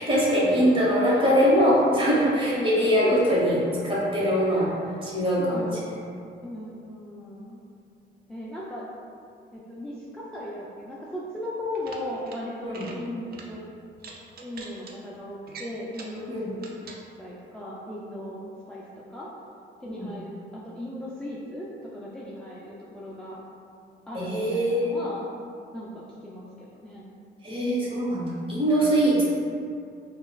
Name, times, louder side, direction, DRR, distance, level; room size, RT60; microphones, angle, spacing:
voice 1, 0.0-3.6 3.8-4.7 5.0-5.6 12.6-12.8 16.3-16.5 19.9-20.1 24.1-25.0 27.4-29.2, equal, 25° right, -6 dB, 1.2 m, -22 dB
voice 2, 1.0-1.8 2.1-3.5 4.5-5.0 5.4-6.0 6.4-7.6 8.3-8.9 9.5-13.7 14.4-16.7 17.2-19.3 19.8-23.4 24.1-25.3 25.7-27.0, left 1 dB, 5° left, -7 dB, 0.4 m, -37 dB
sound 1, 11.6-12.4 12.7-13.0 13.3-13.5 14.0-14.9 15.5-16.2 16.6-17.0, right 4 dB, 50° right, 0.5 m, -43 dB
4.9 x 2.4 x 2.4 m, 2.4 s
cardioid pair, 90°, 20 cm